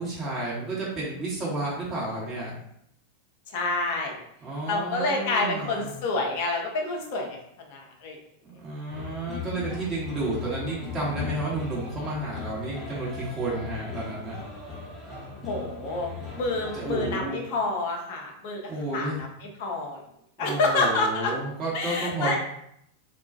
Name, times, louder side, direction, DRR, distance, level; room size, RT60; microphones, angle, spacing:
voice 1, 0.0-2.5 4.4-5.9 8.6-14.4 16.7-17.4 18.7-19.2 20.4-22.4, right 2 dB, 25° right, -7 dB, 1.0 m, -31 dB
voice 2, 3.5-4.2 4.7-7.4 7.7-8.2 15.4-19.3 19.6-20.0 20.4-21.3 21.7-22.4, left 3 dB, 50° left, 1 dB, 0.5 m, -28 dB
sound 1, 8.9-17.3, left 4 dB, 10° left, 0.8 m, -38 dB
2.2 x 2.2 x 2.6 m, 0.73 s
figure-of-eight pair, 90°, 0 cm